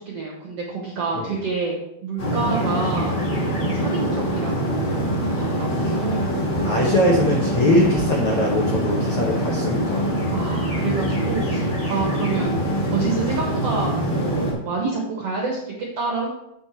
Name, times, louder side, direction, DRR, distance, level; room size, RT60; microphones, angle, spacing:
voice 1, 0.0-1.7 2.0-3.2 3.7-6.3 10.3-12.6 12.9-16.3, right 4 dB, 75° right, -1 dB, 1.4 m, -28 dB
sound 1, 2.2-14.5, equal, 35° left, 2.1 m, -24 dB
voice 2, 6.6-10.0, left 1 dB, 80° left, -2 dB, 1.2 m, -21 dB
7.9 x 5.4 x 4.4 m, 0.85 s
omnidirectional pair, 4.4 m